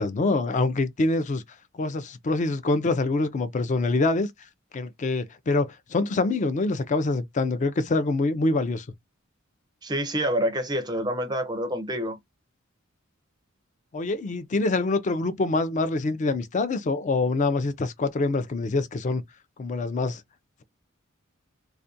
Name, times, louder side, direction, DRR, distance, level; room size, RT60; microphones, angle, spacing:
voice 1, 0.0-1.4 1.7-4.3 4.7-8.9 13.9-19.2 19.6-20.2, left 3 dB, 35° left, 0.4 m, -25 dB
voice 2, 9.8-12.2, equal, 20° right, 0.5 m, -27 dB
2.3 x 2.1 x 2.6 m
head